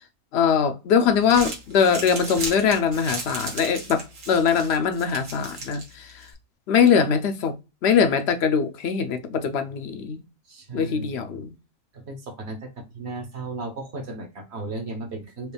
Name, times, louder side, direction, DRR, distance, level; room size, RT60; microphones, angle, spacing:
voice 1, 0.3-6.1 6.7-7.5 7.8-10.2 10.7-11.5, left 7 dB, 65° left, 0.7 m, -22 dB
Crumpling crinkling, 1.1-6.3, right 3 dB, 85° right, 1.7 m, -36 dB
voice 2, 10.5-11.1 11.9-12.7 12.9-15.5, right 2 dB, 55° right, 1.1 m, -35 dB
4.6 x 2.3 x 3.3 m
omnidirectional pair, 1.5 m